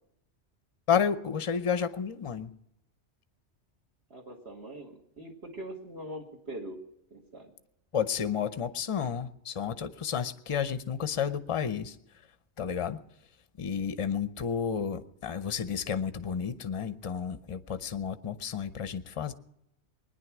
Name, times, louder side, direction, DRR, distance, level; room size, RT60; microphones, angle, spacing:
voice 1, 0.9-2.5 7.9-12.0 12.6-13.0 13.6-19.3, left 7 dB, 35° left, 12 dB, 0.6 m, -31 dB
voice 2, 4.1-6.8 7.1-7.5, right 1 dB, 60° right, 1 dB, 2.4 m, -42 dB
21.0 x 10.0 x 6.1 m, 0.82 s
omnidirectional pair, 1.2 m